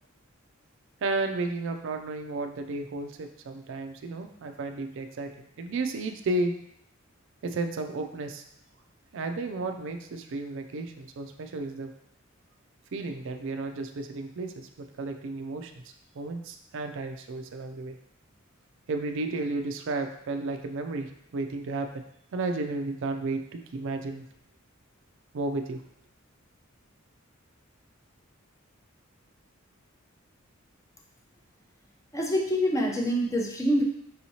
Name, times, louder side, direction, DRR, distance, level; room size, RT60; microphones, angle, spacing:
voice 1, 1.0-6.5 7.4-8.4 9.1-11.9 12.9-15.7 16.2-18.0 18.9-22.0 22.3-24.2 25.3-25.8, right 2 dB, 65° right, 6 dB, 0.4 m, -33 dB
voice 2, 32.1-33.8, equal, 15° left, -1 dB, 0.6 m, -25 dB
5.4 x 2.9 x 2.8 m, 0.72 s
head